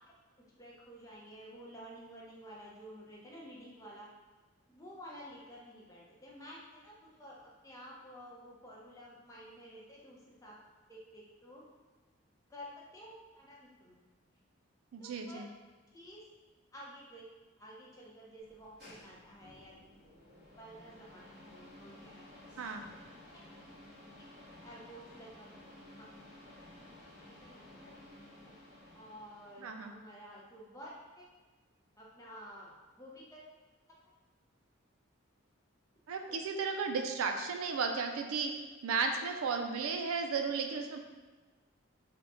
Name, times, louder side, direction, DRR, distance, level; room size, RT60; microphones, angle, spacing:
voice 1, 0.6-4.1 4.7-10.6 10.9-11.6 12.5-13.9 15.0-15.4 15.9-16.2 16.7-17.3 17.6-19.7 20.6-22.3 24.6-25.5 27.1-27.9 28.4-28.5 28.9-31.3 32.0-33.4 36.3-36.4, equal, 15° left, -5 dB, 0.6 m, -51 dB
voice 2, 14.9-15.5 22.6-22.8 29.6-29.9 36.1-38.5 38.8-41.0, right 5 dB, 90° right, 5 dB, 0.4 m, -34 dB
sound 1, 18.4-30.0, left 1 dB, 50° right, 1.3 m, -55 dB
3.6 x 2.2 x 3.6 m, 1.3 s
head